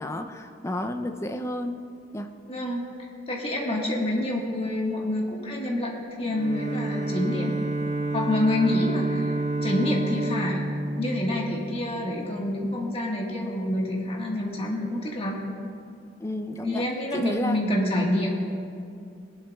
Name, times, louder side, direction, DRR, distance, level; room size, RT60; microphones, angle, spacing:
voice 1, 0.0-1.8 2.1-2.3 3.8-4.1 16.2-16.9 17.1-17.6, left 1 dB, 15° left, 6 dB, 0.5 m, -31 dB
voice 2, 2.5-2.9 3.3-7.5 8.1-9.3 9.6-10.6 11.0-15.4 16.6-18.4, left 1 dB, 30° left, -2 dB, 1.5 m, -27 dB
Bowed string instrument, 6.3-11.9, right 2 dB, 35° right, 1.0 m, -29 dB
19.0 x 11.0 x 2.3 m, 2.4 s
head